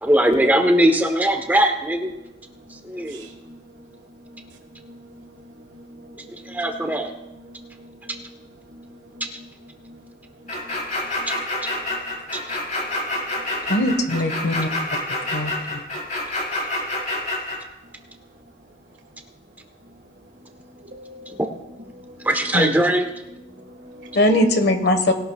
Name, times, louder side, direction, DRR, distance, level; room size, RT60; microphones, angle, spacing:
voice 1, 0.0-2.1 2.8-3.3 6.3-7.1 11.3-11.4 12.3-12.4 21.4-21.5 22.2-23.1, right 1 dB, 10° right, 4 dB, 1.0 m, -20 dB
voice 2, 2.7-3.8 4.3-4.5 4.8-6.6 7.5-8.2 8.7-8.9 9.2-9.5 9.8-10.0 10.7-10.8 11.2-11.3 20.8-21.4 21.9-22.3 23.5-24.2, equal, 75° right, 2 dB, 1.7 m, -45 dB
sound 1, 10.5-17.6, left 2 dB, 45° left, 4.6 m, -27 dB
voice 3, 13.7-14.7 15.3-15.5 22.5-22.7 24.1-25.1, left 1 dB, 65° left, 7 dB, 1.4 m, -20 dB
20.0 x 12.0 x 2.4 m, 0.94 s
head